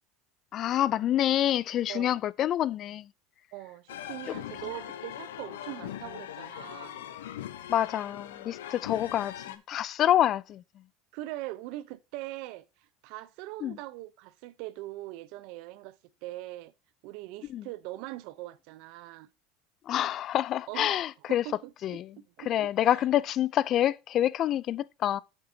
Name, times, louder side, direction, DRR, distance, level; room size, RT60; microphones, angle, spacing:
voice 1, 0.5-3.1 4.3-4.4 7.7-10.6 13.6-13.8 17.5-17.7 19.9-21.4 21.8-22.1 22.5-25.2, left 12 dB, 50° left, 0.4 m, -27 dB
voice 2, 1.9-2.2 3.5-7.0 11.1-16.7 17.0-19.3 20.7-23.1, right 17 dB, 70° right, 0.6 m, -42 dB
sound 1, 3.9-9.6, left 11 dB, 85° left, 0.7 m, -41 dB
8.2 x 7.6 x 2.7 m
hypercardioid pair, 90°, 0 cm